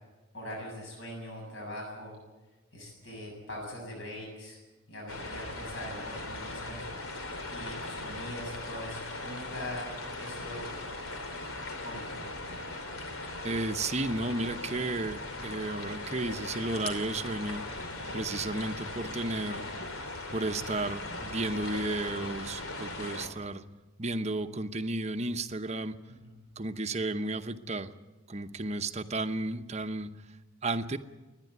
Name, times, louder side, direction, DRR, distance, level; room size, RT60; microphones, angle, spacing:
voice 1, 0.3-2.2 2.7-4.6 4.9-9.9 10.2-10.8 11.8-12.3 26.1-26.3, left 1 dB, 60° left, -1 dB, 7.5 m, -42 dB
sound 1, 5.1-23.3, left 2 dB, 90° left, 2.6 m, -39 dB
voice 2, 13.4-17.6 18.1-19.7 20.3-23.6 24.0-26.0 26.6-27.9 28.3-30.1 30.6-31.0, right 2 dB, 30° right, 9 dB, 0.8 m, -33 dB
27.5 x 10.5 x 9.4 m, 1.2 s
head